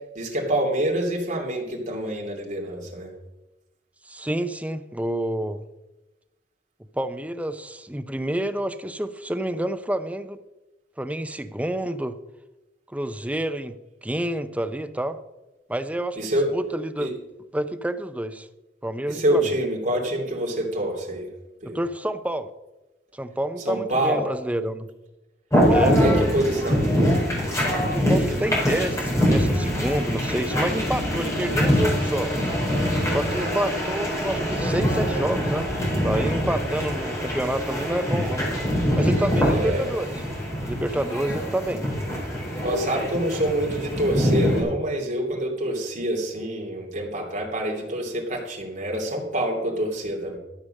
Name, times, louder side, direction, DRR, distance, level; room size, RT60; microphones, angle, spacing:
voice 1, 0.1-3.1 16.2-16.5 17.0-17.1 19.1-21.3 21.6-21.8 23.6-24.3 26.0-26.9 33.3-33.6 39.5-39.9 42.6-50.4, right 1 dB, 45° right, 0 dB, 2.9 m, -26 dB
voice 2, 4.1-5.6 6.9-10.4 11.0-12.2 12.9-13.8 14.0-15.2 15.7-17.1 17.5-18.5 18.8-19.6 21.6-22.5 23.2-24.9 25.7-26.0 27.9-32.3 33.1-35.7 36.0-38.5 39.0-40.1 40.6-41.8, right 1 dB, 10° right, 9 dB, 0.6 m, -28 dB
sound 1, 25.5-44.6, equal, 15° left, 4.6 m, -24 dB
13.0 x 6.8 x 6.5 m, 1.0 s
head